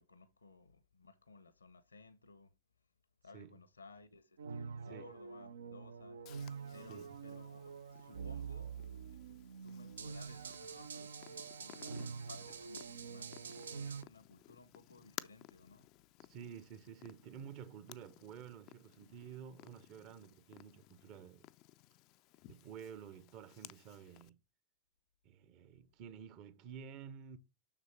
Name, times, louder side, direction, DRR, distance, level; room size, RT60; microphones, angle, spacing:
voice 1, 0.0-2.5 3.2-15.9, left 3 dB, 75° left, 0.9 m, -59 dB
sound 1, 4.4-14.0, right 6 dB, 70° right, 0.6 m, -46 dB
Purr, 6.2-24.3, left 17 dB, 40° left, 0.4 m, -58 dB
voice 2, 16.3-21.5 22.5-24.4 25.2-27.4, right 8 dB, 40° right, 0.9 m, -51 dB
7.2 x 6.4 x 3.4 m
figure-of-eight pair, 90°, 0 cm